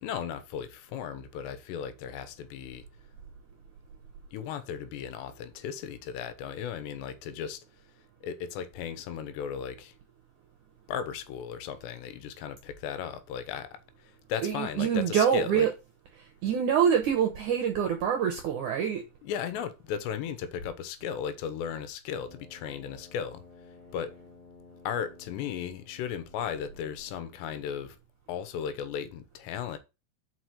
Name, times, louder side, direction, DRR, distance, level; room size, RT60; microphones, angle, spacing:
voice 1, 0.0-2.8 4.3-7.6 8.2-9.9 10.9-15.7 19.2-23.4 23.9-24.1 24.8-28.0 28.3-29.8, left 8 dB, 85° left, 3.1 m, -36 dB
voice 2, 14.4-15.7 16.4-19.1, right 8 dB, 75° right, 1.8 m, -25 dB
Brass instrument, 22.2-28.1, left 3 dB, 35° left, 1.9 m, -55 dB
6.0 x 5.1 x 6.4 m
omnidirectional pair, 4.9 m